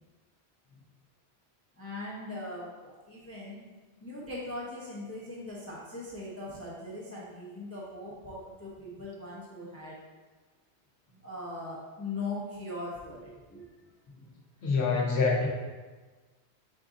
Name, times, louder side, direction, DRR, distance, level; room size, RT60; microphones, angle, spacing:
voice 1, 1.8-3.6 4.0-10.0 11.2-13.7, left 2 dB, 15° left, -7 dB, 0.6 m, -40 dB
voice 2, 14.6-15.5, left 4 dB, 70° left, -1 dB, 1.0 m, -25 dB
4.7 x 2.5 x 3.6 m, 1.3 s
omnidirectional pair, 1.2 m